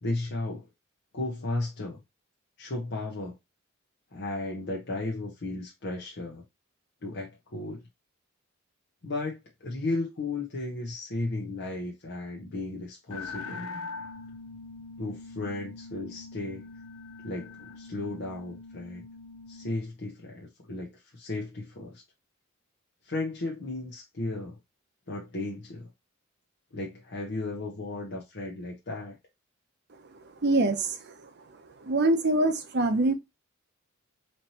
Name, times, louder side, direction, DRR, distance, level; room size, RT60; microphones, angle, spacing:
voice 1, 0.0-0.7 1.1-2.0 2.6-3.4 4.1-6.4 7.0-7.8 9.0-13.7 15.0-16.7 17.2-19.0 19.5-22.0 23.0-24.6 25.1-25.9 26.7-29.2, left 2 dB, 55° left, 0.8 m, -35 dB
sound 1, 13.1-19.7, left 3 dB, 85° left, 0.6 m, -42 dB
voice 2, 30.4-31.1 31.8-33.1, right 2 dB, 55° right, 0.7 m, -24 dB
4.3 x 3.1 x 2.8 m
head